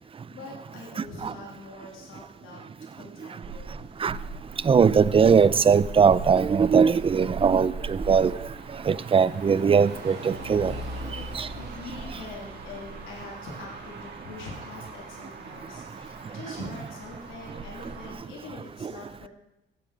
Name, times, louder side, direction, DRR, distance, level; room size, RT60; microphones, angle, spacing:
voice 1, 0.0-2.6 2.9-3.9 10.8-11.3 11.5-19.3, left 3 dB, 85° left, -2 dB, 3.2 m, -43 dB
Motor vehicle (road), 3.4-18.1, right 2 dB, 55° right, 2.6 m, -39 dB
voice 2, 4.6-8.4 8.9-10.7 11.3-11.5 16.6-16.7 18.8-18.9, right 6 dB, 30° right, 18 dB, 0.5 m, -20 dB
15.5 x 7.4 x 5.0 m, 0.87 s
cardioid pair, 90°, 20 cm